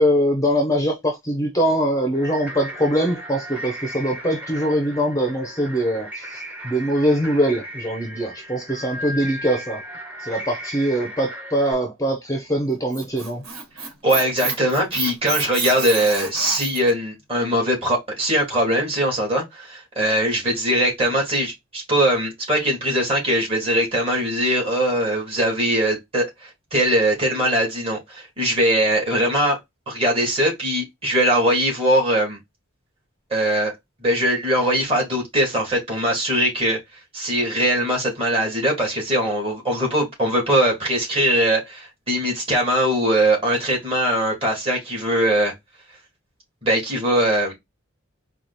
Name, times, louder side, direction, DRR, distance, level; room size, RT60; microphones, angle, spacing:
voice 1, 0.0-9.8 10.2-13.4, equal, 15° left, 0.8 m, -22 dB
sound 1, 2.1-11.7, equal, 5° right, 1.2 m, -36 dB
Squeak, 12.7-16.9, right 5 dB, 80° right, 1.5 m, -29 dB
voice 2, 14.0-29.6 29.9-32.4 33.3-33.7 34.0-36.8 37.1-45.5 46.6-47.5, right 1 dB, 25° right, 2.5 m, -21 dB
4.7 x 2.5 x 4.1 m
head